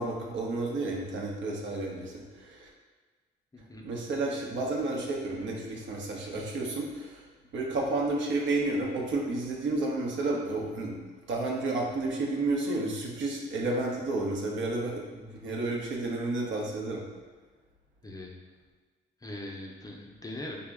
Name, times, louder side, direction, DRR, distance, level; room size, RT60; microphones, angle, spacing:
voice 1, 0.0-2.7 3.8-11.0 11.3-17.0, right 2 dB, 70° right, -1 dB, 0.8 m, -31 dB
voice 2, 3.5-3.9 18.0-18.4 19.2-20.7, left 1 dB, 20° left, 0 dB, 0.5 m, -41 dB
4.0 x 2.1 x 3.5 m, 1.4 s
cardioid pair, 90°, 20 cm